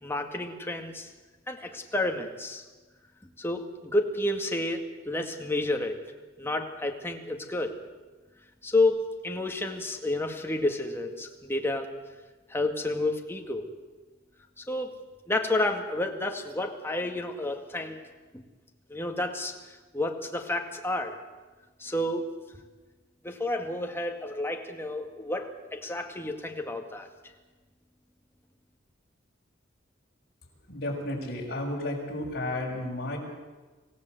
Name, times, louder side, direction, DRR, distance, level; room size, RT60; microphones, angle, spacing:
voice 1, 0.0-1.1 1.5-2.6 3.4-6.0 6.4-7.7 8.6-11.9 12.5-13.7 14.6-15.0 15.3-18.0 18.3-18.4 18.9-19.6 19.9-21.2 21.8-22.3 23.2-27.1, left 2 dB, 10° left, 3 dB, 2.1 m, -30 dB
voice 2, 30.7-33.2, left 1 dB, 55° left, -1 dB, 6.2 m, -32 dB
26.5 x 16.5 x 7.9 m, 1.3 s
head